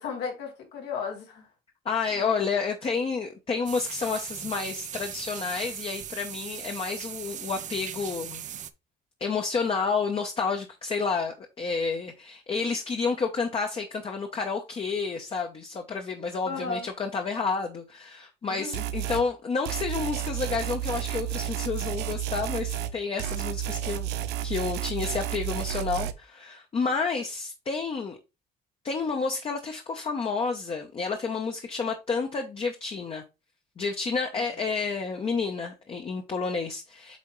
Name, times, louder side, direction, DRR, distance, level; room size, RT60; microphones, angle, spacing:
voice 1, 0.0-1.5 2.1-2.3 16.5-16.9 18.5-18.7 34.3-34.4, left 5 dB, 80° left, 2.1 m, -35 dB
voice 2, 1.8-8.4 9.2-24.1 24.4-28.2 28.8-33.2 33.8-37.2, left 4 dB, 35° left, 0.9 m, -30 dB
sound 1, 3.7-8.7, right 10 dB, 45° right, 0.6 m, -39 dB
sound 2, 18.7-19.2 19.6-22.9 23.2-26.1, right 11 dB, 85° right, 0.6 m, -31 dB
8.3 x 3.6 x 3.1 m
cardioid pair, 110°, 17 cm